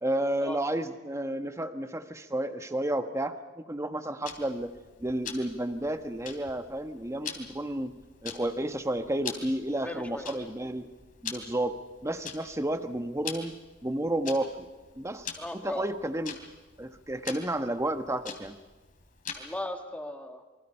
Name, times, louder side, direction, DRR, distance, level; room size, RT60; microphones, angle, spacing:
voice 1, 0.0-7.9 8.2-10.9 11.2-11.8 12.0-13.5 13.8-14.7 15.0-16.4 16.8-18.5, right 1 dB, 15° right, 8 dB, 1.3 m, -31 dB
Tick-tock, 4.2-19.7, left 6 dB, 45° left, 3.4 m, -44 dB
voice 2, 9.8-10.5 15.4-16.0 19.4-20.4, left 1 dB, 10° left, 5 dB, 2.0 m, -38 dB
27.5 x 24.0 x 5.7 m, 1.2 s
head